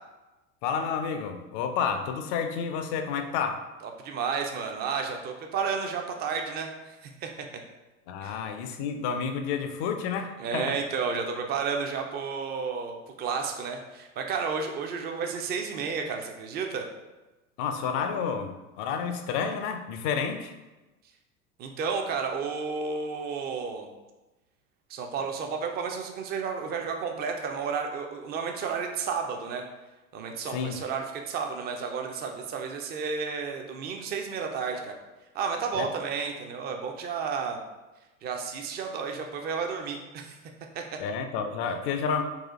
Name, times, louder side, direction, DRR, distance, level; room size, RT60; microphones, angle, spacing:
voice 1, 0.6-3.7 8.1-10.8 17.6-20.5 30.5-30.8 35.7-35.9 41.0-42.2, left 6 dB, 40° left, 7 dB, 0.4 m, -30 dB
voice 2, 4.0-7.5 8.2-8.4 10.4-16.9 21.6-23.9 24.9-29.6 30.1-34.9 35.3-37.6 38.2-40.4 40.7-41.0, right 5 dB, 25° right, 3 dB, 0.4 m, -32 dB
4.1 x 2.4 x 3.5 m, 1.1 s
figure-of-eight pair, 80°, 43 cm